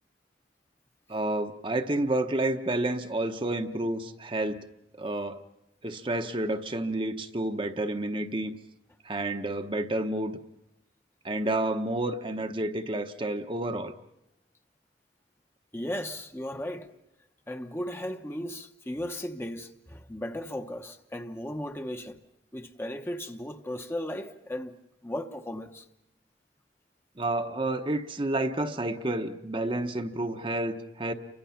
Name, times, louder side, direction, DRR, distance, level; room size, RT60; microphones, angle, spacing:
voice 1, 1.1-4.6 5.0-5.4 5.8-8.5 9.0-10.4 11.2-13.9 27.2-31.1, right 1 dB, 30° right, 0.9 m, -30 dB
voice 2, 15.7-16.9 17.5-22.2 22.5-24.7 25.0-25.8, left 1 dB, 15° left, 0.9 m, -36 dB
29.5 x 24.0 x 5.8 m
head